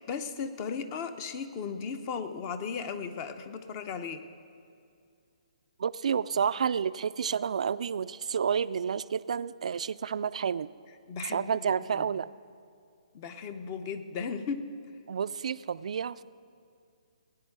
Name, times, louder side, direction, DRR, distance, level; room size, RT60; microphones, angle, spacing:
voice 1, 0.0-4.2 11.1-12.0 13.1-14.7, left 6 dB, 30° left, 10 dB, 0.8 m, -36 dB
voice 2, 5.8-10.7 11.2-12.3 15.1-16.2, right 7 dB, 70° right, 16 dB, 0.4 m, -30 dB
17.5 x 9.6 x 4.7 m, 2.4 s
hypercardioid pair, 150°, 4 cm